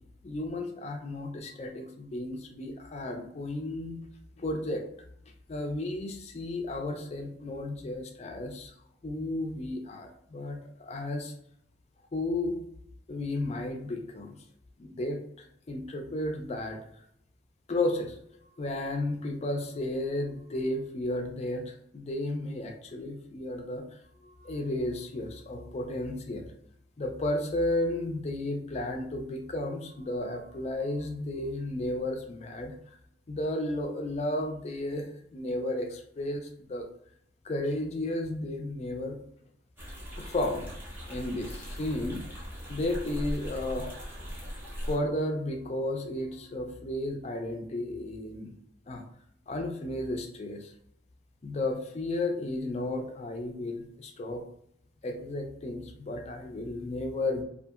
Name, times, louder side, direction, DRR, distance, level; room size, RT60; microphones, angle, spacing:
voice 1, 0.2-4.0 4.4-4.8 5.5-8.7 9.0-11.3 12.1-12.6 13.1-14.3 14.8-15.2 15.7-16.8 17.7-18.2 18.6-23.8 24.2-26.5 27.0-32.7 33.3-36.9 37.4-39.2 40.2-40.7 41.1-42.2 42.7-43.9 44.9-48.5 48.9-49.0 49.5-50.7 51.4-54.4 55.0-57.4, left 1 dB, 35° left, 4 dB, 0.4 m, -33 dB
sound 1, 39.8-45.0, equal, 10° right, 0.7 m, -39 dB
2.7 x 2.4 x 2.3 m, 0.71 s
head